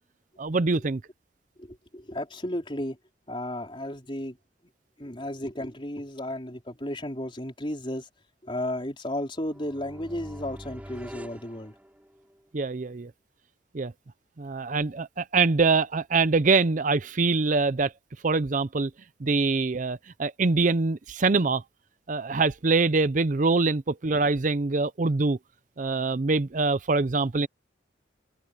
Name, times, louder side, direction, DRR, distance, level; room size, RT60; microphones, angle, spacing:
voice 1, 0.4-1.0 12.5-13.1 13.7-13.9 14.4-17.9 18.2-18.9 19.2-21.6 22.1-25.4 25.8-27.5, right 3 dB, 45° right, 0.6 m, -24 dB
voice 2, 1.6-3.0 3.3-4.4 5.0-8.1 8.4-11.7, left 1 dB, 30° left, 4.3 m, -34 dB
sound 1, 9.4-12.4, equal, 10° right, 3.1 m, -44 dB
head